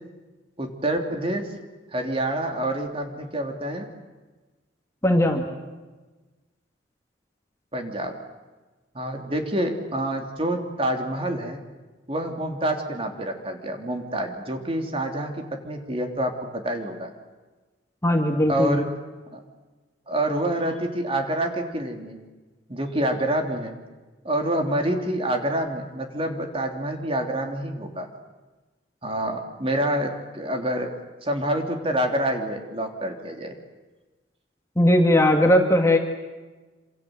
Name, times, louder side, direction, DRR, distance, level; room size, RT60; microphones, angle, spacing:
voice 1, 0.6-1.5 1.9-3.9 7.7-8.1 8.9-11.6 12.1-17.1 18.5-18.9 19.3-19.4 20.1-22.2 22.7-23.7 24.2-28.1 29.0-30.9 31.2-33.5, right 1 dB, 30° right, 4 dB, 3.4 m, -27 dB
voice 2, 5.0-5.5 18.0-18.8 34.8-36.0, left 1 dB, 15° left, 3 dB, 2.4 m, -18 dB
27.5 x 27.0 x 8.0 m, 1.2 s
head